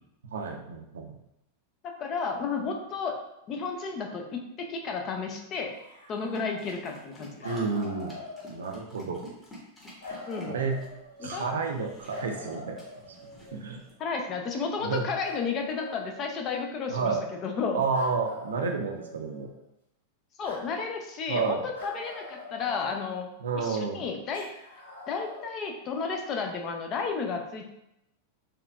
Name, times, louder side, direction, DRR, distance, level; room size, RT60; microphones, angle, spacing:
voice 1, 0.3-1.1 7.4-8.2 8.5-9.2 10.5-10.8 11.2-12.8 13.5-13.8 14.8-15.0 16.9-17.2 17.7-19.5 21.3-21.6 23.4-24.0, right 4 dB, 65° right, 3 dB, 0.5 m, -30 dB
voice 2, 1.8-3.2 3.5-5.7 6.1-7.5 10.3-10.6 11.2-11.5 14.0-17.1 17.4-17.8 20.4-23.3 23.6-24.5 25.1-27.7, left 5 dB, 35° left, 3 dB, 0.5 m, -32 dB
sound 1, 5.7-7.1 7.4-9.0 10.0-11.5 12.1-13.7 15.2-16.9 17.9-19.6 20.4-20.6 21.7-23.4 24.3-25.5, left 2 dB, 70° left, 1.1 m, -44 dB
sound 2, 6.3-13.9, equal, 10° left, 1.2 m, -51 dB
4.3 x 2.5 x 2.4 m, 0.83 s
figure-of-eight pair, 90°, 0 cm